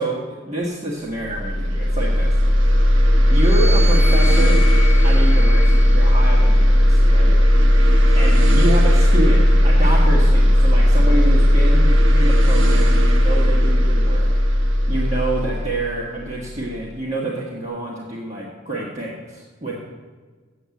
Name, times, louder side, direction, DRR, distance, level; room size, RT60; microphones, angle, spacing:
voice 1, 0.0-2.7 3.3-4.6 5.0-7.7 8.1-19.9, right 1 dB, 35° right, -4 dB, 1.3 m, -28 dB
sound 1, 1.2-16.7, equal, 75° right, 1.1 m, -15 dB
sound 2, 3.3-6.9 7.7-9.3, left 2 dB, 15° right, 1.0 m, -33 dB
8.0 x 7.0 x 8.3 m, 1.4 s
head